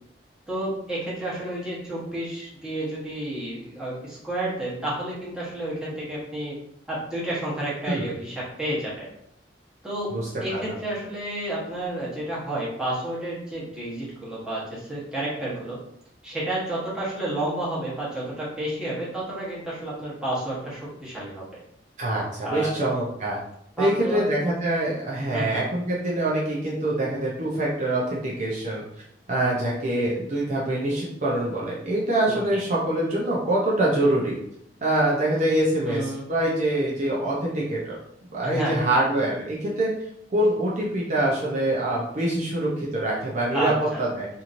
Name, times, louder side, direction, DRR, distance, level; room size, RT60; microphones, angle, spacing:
voice 1, 0.5-6.6 6.9-9.1 9.8-10.1 10.4-15.8 16.2-21.6 22.4-22.7 23.8-24.3 25.3-25.6 32.3-32.6 35.9-36.2 38.4-38.8 43.5-44.0, right 1 dB, 5° right, -8 dB, 1.0 m, -30 dB
voice 2, 22.0-23.4 23.8-28.8 29.3-34.3 34.8-38.0 38.3-39.9 40.3-44.3, right 1 dB, 40° right, -5 dB, 0.5 m, -24 dB
2.9 x 2.7 x 2.5 m, 0.76 s
head